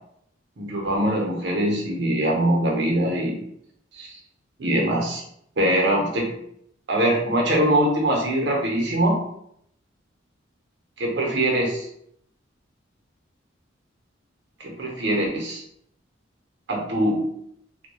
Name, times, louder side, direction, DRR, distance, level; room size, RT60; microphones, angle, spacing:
voice 1, 0.6-3.4 3.9-4.2 4.6-5.2 5.6-6.3 6.9-9.2 11.0-11.9 14.6-15.6 16.7-17.3, right 1 dB, 60° right, 0 dB, 0.7 m, -22 dB
3.0 x 2.1 x 2.2 m, 0.72 s
head